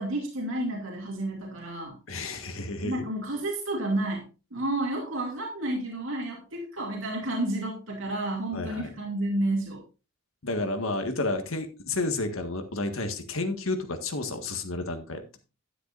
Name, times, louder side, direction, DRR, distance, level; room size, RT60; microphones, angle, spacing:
voice 1, 0.0-2.0 2.8-9.8, right 1 dB, 75° right, -1 dB, 2.5 m, -31 dB
voice 2, 2.1-3.0 8.5-8.9 10.4-15.4, left 2 dB, 85° left, 6 dB, 1.7 m, -31 dB
11.5 x 10.0 x 2.6 m, 0.31 s
head